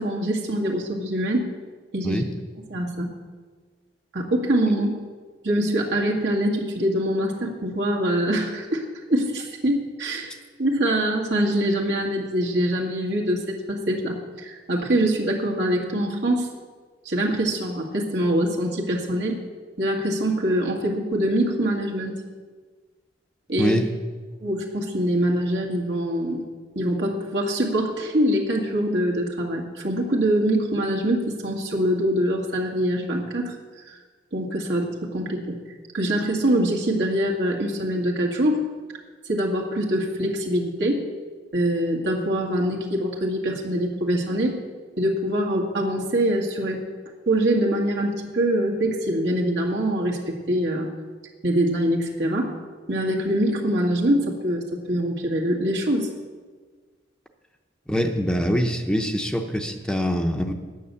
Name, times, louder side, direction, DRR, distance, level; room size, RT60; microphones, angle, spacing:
voice 1, 0.0-1.5 1.9-2.2 2.7-3.1 4.1-4.9 5.4-10.3 10.6-16.5 17.1-19.4 19.8-22.2 23.5-23.8 24.4-26.4 26.8-33.6 34.3-35.6 35.9-38.6 39.3-41.0 41.5-44.5 45.0-46.8 47.3-50.9 51.4-52.5 52.9-56.1, right 1 dB, 75° right, -1 dB, 2.1 m, -24 dB
voice 2, 57.9-60.5, equal, 5° left, 4 dB, 0.7 m, -24 dB
9.4 x 9.3 x 7.0 m, 1.5 s
head